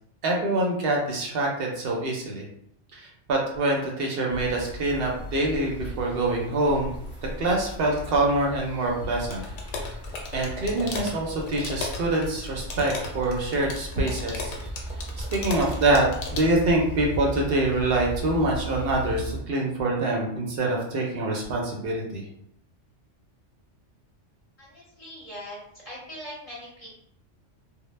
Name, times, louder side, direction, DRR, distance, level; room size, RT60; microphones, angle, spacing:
voice 1, 0.2-2.4 2.9-6.9 7.4-9.4 10.3-14.5 15.2-22.2, right 2 dB, 60° right, -1 dB, 0.7 m, -25 dB
sound 1, 4.3-19.4, right 1 dB, 15° right, 0.5 m, -38 dB
sound 2, 9.3-16.5, left 3 dB, 75° left, 0.9 m, -36 dB
voice 2, 24.6-25.6 25.8-26.9, equal, 35° left, -7 dB, 0.7 m, -41 dB
2.1 x 2.0 x 3.1 m, 0.72 s
omnidirectional pair, 1.2 m